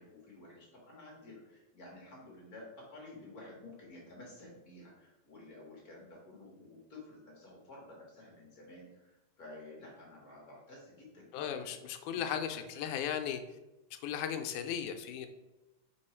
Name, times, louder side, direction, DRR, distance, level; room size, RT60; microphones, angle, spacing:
voice 1, 0.0-12.2 12.7-12.8, left 2 dB, 50° left, -3 dB, 1.1 m, -52 dB
voice 2, 11.3-13.4 14.0-15.3, left 9 dB, 85° left, 6 dB, 2.0 m, -36 dB
4.8 x 4.6 x 4.3 m, 1.0 s
omnidirectional pair, 3.5 m